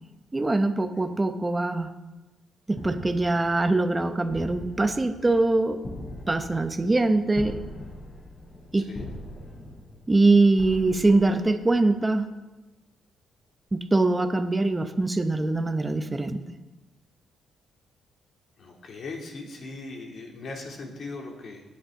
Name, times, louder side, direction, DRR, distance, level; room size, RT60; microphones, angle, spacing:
voice 1, 0.3-1.9 2.7-5.8 6.3-7.6 8.7-8.9 10.1-12.3 13.7-16.4, right 2 dB, 20° right, 8 dB, 0.9 m, -23 dB
sound 1, 2.7-12.2, left 1 dB, 25° left, 4.3 m, -42 dB
voice 2, 8.8-9.1 18.6-21.6, left 3 dB, 55° left, 0 dB, 2.7 m, -39 dB
18.5 x 8.0 x 3.8 m, 1.1 s
cardioid pair, 90°, 0 cm